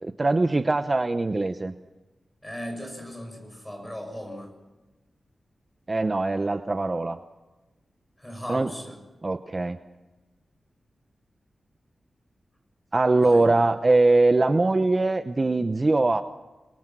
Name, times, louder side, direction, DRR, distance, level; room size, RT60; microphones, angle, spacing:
voice 1, 0.0-1.7 5.9-7.2 8.5-8.7 9.2-9.8 12.9-16.2, right 2 dB, 30° right, 8 dB, 0.8 m, -22 dB
voice 2, 2.4-4.5 8.2-9.0 13.2-13.5, equal, 10° left, 4 dB, 6.9 m, -37 dB
28.0 x 22.5 x 6.1 m, 1.1 s
wide cardioid pair, 125°, 0 cm